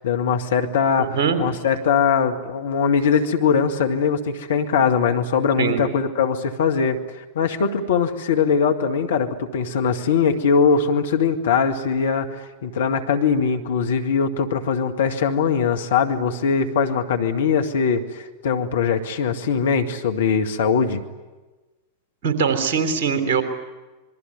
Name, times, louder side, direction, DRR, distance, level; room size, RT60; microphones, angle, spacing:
voice 1, 0.0-12.3 12.6-21.0, left 6 dB, 60° left, 5 dB, 1.9 m, -21 dB
voice 2, 1.0-1.4 5.6-5.8 22.2-23.4, right 6 dB, 50° right, 7 dB, 3.5 m, -21 dB
26.5 x 22.0 x 9.5 m, 1.2 s
figure-of-eight pair, 90°, 0 cm